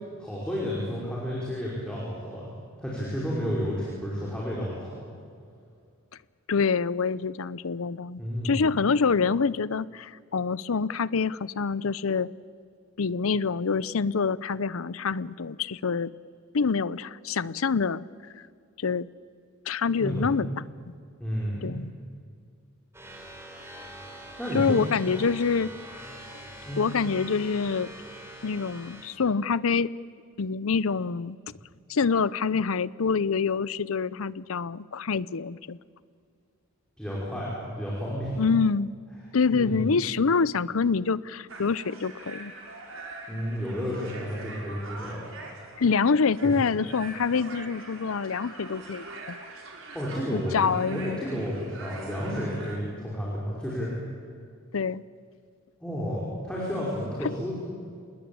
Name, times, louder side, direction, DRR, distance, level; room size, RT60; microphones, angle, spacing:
voice 1, 0.2-2.5 2.8-5.0 8.2-8.6 20.0-20.4 21.2-21.7 24.4-24.8 26.6-26.8 37.0-38.3 39.5-40.0 43.3-45.2 46.4-46.5 49.9-53.9 55.8-57.6, equal, 5° left, -6 dB, 5.2 m, -31 dB
voice 2, 6.5-12.3 13.0-16.1 16.5-18.0 18.8-19.1 19.7-20.5 20.9-21.0 21.6-21.9 24.5-25.7 26.3-26.4 26.8-27.9 28.4-29.9 30.4-31.4 31.9-35.8 38.4-38.9 39.3-42.5 45.8-49.4 50.3-51.2 54.7-55.0 57.2-57.3, left 5 dB, 75° left, 19 dB, 0.6 m, -26 dB
sound 1, 22.9-29.1, right 1 dB, 10° right, 4.0 m, -44 dB
sound 2, 41.5-52.8, right 3 dB, 65° right, 4.7 m, -43 dB
27.0 x 20.0 x 8.7 m, 2.3 s
head